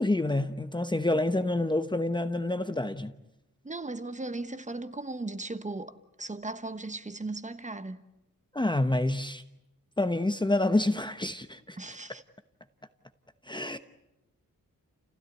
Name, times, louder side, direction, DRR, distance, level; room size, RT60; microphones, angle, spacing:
voice 1, 0.0-3.1 8.5-9.4 10.0-11.8 13.5-13.8, left 2 dB, 15° left, 1.0 m, -27 dB
voice 2, 3.6-8.0 11.8-12.2, right 2 dB, 20° right, 1.3 m, -37 dB
30.0 x 16.5 x 9.5 m
wide cardioid pair, 110°, 34 cm